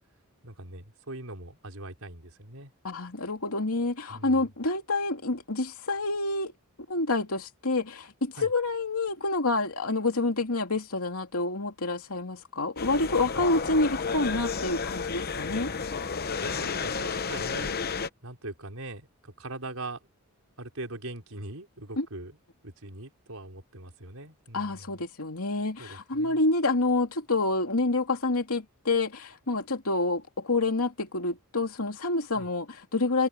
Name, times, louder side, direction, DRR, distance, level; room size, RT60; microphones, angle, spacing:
voice 1, 0.4-2.7 4.1-4.5 8.3-8.5 13.3-13.4 16.4-17.8 18.2-20.1 20.6-22.4 22.6-25.0 25.8-26.4 32.3-32.5, right 2 dB, 70° right, 5.1 m, -41 dB
voice 2, 2.8-6.5 6.9-15.7 22.0-22.1 24.5-33.3, left 2 dB, 75° left, 2.8 m, -28 dB
sound 1, 12.8-18.1, left 5 dB, 45° left, 0.9 m, -32 dB
head